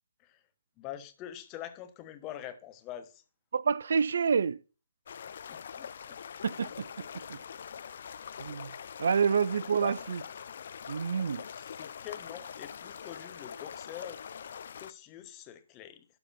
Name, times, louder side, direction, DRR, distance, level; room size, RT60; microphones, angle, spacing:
voice 1, 0.8-3.2 5.5-6.2 9.8-9.9 11.5-14.2 14.8-16.1, left 12 dB, 25° left, 1.0 m, -45 dB
voice 2, 3.5-4.6 6.4-6.7 7.3-7.4 8.4-8.7 9.0-10.2 10.9-11.4, right 6 dB, 60° right, 0.4 m, -27 dB
sound 1, 5.1-14.9, left 7 dB, 55° left, 0.5 m, -43 dB
12.5 x 4.1 x 5.7 m
figure-of-eight pair, 140°, 0 cm